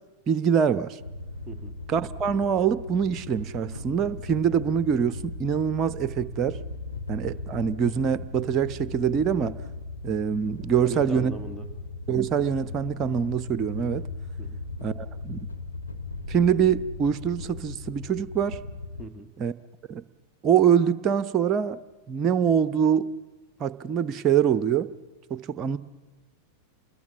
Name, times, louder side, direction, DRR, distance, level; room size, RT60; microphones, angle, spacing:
voice 1, 0.3-1.0 1.9-6.6 7.1-9.6 10.0-11.3 12.1-14.0 14.8-15.5 16.3-18.6 19.4-19.5 19.9-20.0 20.4-21.8 22.1-23.1 23.6-24.9 25.3-25.8, right 8 dB, 30° right, 15 dB, 0.8 m, -24 dB
sound 1, 1.0-19.0, left 3 dB, 90° left, 1.6 m, -38 dB
voice 2, 1.4-1.8 10.8-11.7 14.4-14.6 19.0-19.3, right 1 dB, ahead, 3 dB, 1.7 m, -38 dB
28.5 x 20.5 x 7.1 m, 1.3 s
figure-of-eight pair, 90°, 0 cm